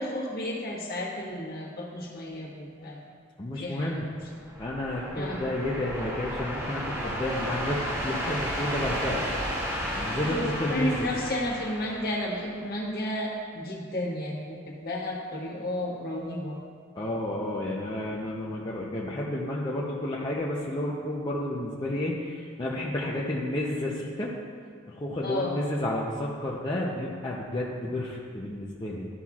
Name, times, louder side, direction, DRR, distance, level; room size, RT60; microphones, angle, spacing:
voice 1, 0.0-3.0 3.6-4.1 5.1-5.4 10.2-16.6 25.2-25.6, left 1 dB, 50° left, -3 dB, 1.4 m, -32 dB
voice 2, 3.4-4.1 4.6-9.2 10.0-11.1 17.0-24.3 24.9-29.1, left 1 dB, 20° left, -5 dB, 0.6 m, -31 dB
sound 1, 4.2-12.7, equal, 15° right, 1.2 m, -33 dB
12.5 x 5.7 x 2.4 m, 2.1 s
head